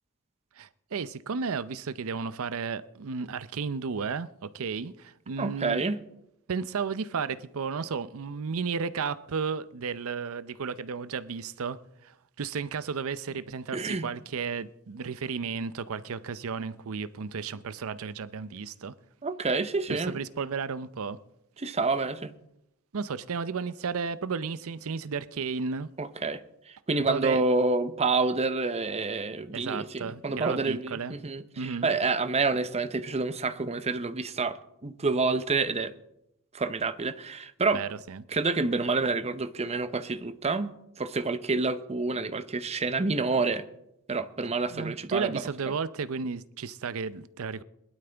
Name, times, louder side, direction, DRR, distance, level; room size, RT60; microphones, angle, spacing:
voice 1, 0.6-5.8 6.5-18.9 19.9-21.2 22.9-25.9 27.1-27.4 29.5-31.2 31.6-31.9 37.7-38.2 44.7-47.6, right 5 dB, 65° right, 0.6 m, -33 dB
voice 2, 5.4-6.0 13.7-14.1 19.2-20.2 21.6-22.3 26.0-26.4 26.9-35.9 36.5-37.8 38.3-43.6 44.1-45.4, right 3 dB, 30° right, 0.7 m, -28 dB
21.5 x 12.0 x 3.4 m
head